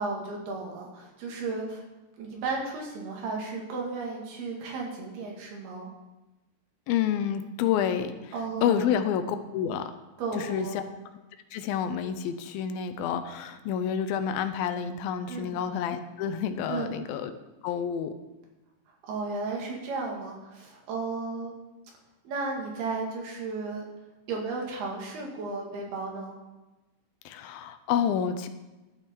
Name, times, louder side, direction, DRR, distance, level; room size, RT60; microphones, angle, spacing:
voice 1, 0.0-1.8 2.2-5.9 8.3-8.8 10.2-10.8 15.3-15.5 16.7-16.9 19.0-21.5 22.3-23.8 24.3-26.4, right 3 dB, 90° right, -1 dB, 4.1 m, -34 dB
voice 2, 6.9-8.3 8.6-9.9 10.3-10.8 11.5-17.3 17.6-18.1 27.3-28.5, left 8 dB, 80° left, 9 dB, 2.5 m, -29 dB
12.5 x 8.9 x 4.6 m, 1.1 s
omnidirectional pair, 4.3 m